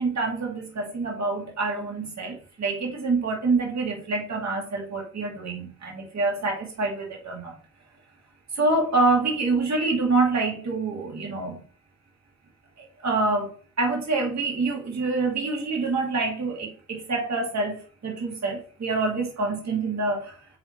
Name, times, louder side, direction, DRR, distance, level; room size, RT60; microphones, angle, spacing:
voice 1, 0.0-7.5 8.6-11.6 12.8-13.5 13.8-20.4, right 3 dB, 65° right, 2.4 m, -26 dB
7.6 x 4.3 x 3.1 m
cardioid pair, 55°, 30 cm